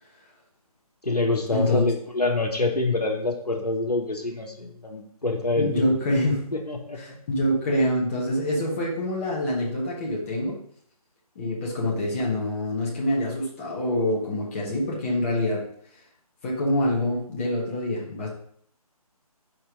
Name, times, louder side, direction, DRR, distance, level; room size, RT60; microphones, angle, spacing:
voice 1, 1.0-5.9 6.5-7.0, left 2 dB, 90° left, 2 dB, 1.3 m, -26 dB
voice 2, 5.6-6.4 7.0-10.6 11.3-15.6 16.4-18.3, left 1 dB, 20° left, -4 dB, 1.4 m, -25 dB
5.0 x 4.4 x 5.1 m, 0.64 s
figure-of-eight pair, 150°, 20 cm